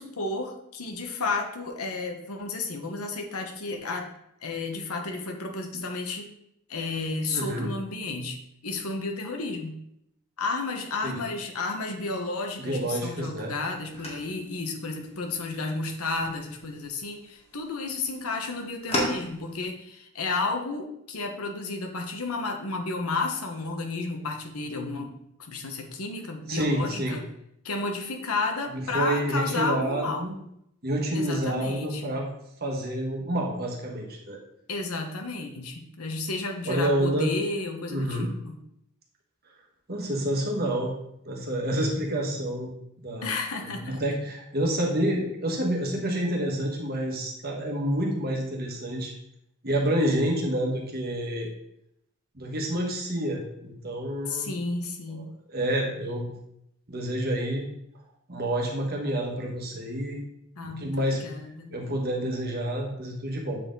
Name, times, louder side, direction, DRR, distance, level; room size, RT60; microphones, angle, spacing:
voice 1, 0.0-4.1 4.4-6.3 6.7-9.8 10.4-27.2 27.6-30.3 31.1-32.1 34.7-38.6 43.2-44.0 54.3-55.3 60.6-61.8, left 3 dB, 85° left, 3 dB, 1.1 m, -32 dB
voice 2, 7.3-7.7 11.0-11.2 12.6-13.6 26.5-27.2 28.7-30.3 30.8-32.3 32.6-34.4 36.6-37.3 37.9-38.3 39.9-40.9 41.2-42.7 43.0-43.3 43.6-49.1 49.6-51.5 52.3-54.5 55.1-56.3 56.9-57.7 58.3-60.2 60.6-61.2 61.7-63.6, right 1 dB, 45° right, 0 dB, 1.2 m, -28 dB
sound 1, 12.4-19.7, equal, 25° left, 1.6 m, -38 dB
7.7 x 4.3 x 3.9 m, 0.77 s
head